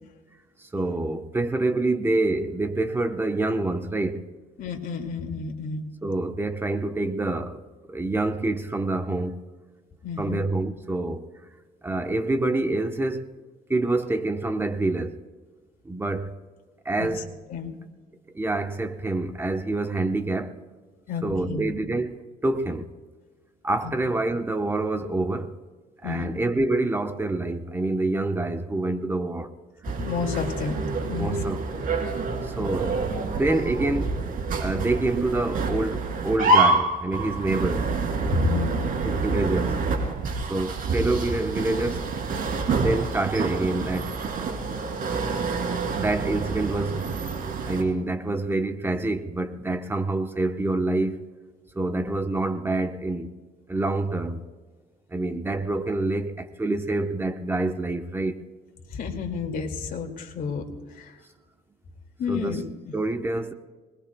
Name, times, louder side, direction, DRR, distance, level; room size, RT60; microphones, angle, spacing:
voice 1, 0.7-4.3 6.0-7.6 7.9-9.4 10.2-11.3 11.8-13.3 13.7-15.2 15.8-16.3 16.8-17.3 18.3-20.6 21.2-22.9 23.6-25.6 26.0-29.5 31.2-31.9 32.6-34.2 34.6-37.9 39.0-39.7 40.5-42.1 42.7-44.2 45.9-47.1 47.7-51.2 51.8-53.3 53.7-54.4 55.1-58.4 62.3-62.6 62.9-63.5, right 2 dB, 15° right, 1.0 m, -26 dB
voice 2, 4.6-5.9 10.0-10.4 17.0-17.2 17.5-17.7 21.1-21.7 23.8-23.9 26.0-26.3 30.0-30.8 31.1-31.4 32.6-32.7 38.2-38.9 58.9-61.2 62.2-62.9, left 5 dB, 55° left, 2.4 m, -30 dB
sound 1, 29.8-47.8, right 3 dB, 55° right, 3.2 m, -27 dB
25.0 x 20.5 x 2.3 m
cardioid pair, 110°, 17 cm